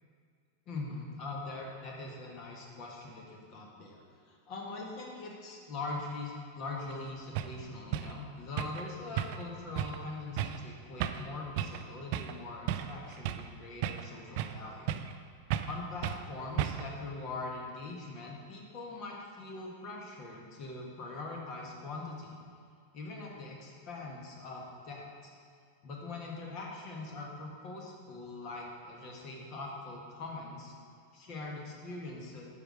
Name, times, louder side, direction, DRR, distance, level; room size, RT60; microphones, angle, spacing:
voice 1, 0.7-14.9 15.6-22.4 22.9-25.3 25.8-30.7 31.1-32.4, left 3 dB, 40° left, -1 dB, 1.6 m, -42 dB
sound 1, 6.9-7.0 7.4-7.6 7.9-8.2 8.6-8.9 9.2-9.5 9.8-10.0 10.4-10.6 11.0-11.3 11.6-11.8 12.1-12.4 12.7-13.5 13.8-14.6 14.9-15.2 15.5-15.8 16.0-16.2 16.6-17.0, right 11 dB, 45° right, 0.4 m, -34 dB
8.8 x 5.9 x 4.9 m, 2.1 s
figure-of-eight pair, 90°, 0 cm